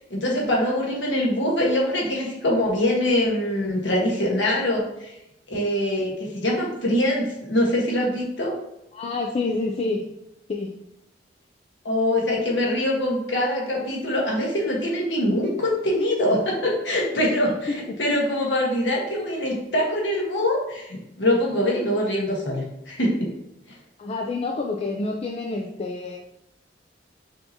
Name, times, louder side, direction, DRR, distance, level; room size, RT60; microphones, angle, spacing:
voice 1, 0.1-5.1 5.5-8.6 11.8-23.3, left 1 dB, 80° left, -2 dB, 1.3 m, -23 dB
voice 2, 8.9-10.0 10.5-10.7 17.7-18.0 24.0-26.2, left 3 dB, 35° left, 1 dB, 0.4 m, -28 dB
5.6 x 2.8 x 2.8 m, 0.87 s
head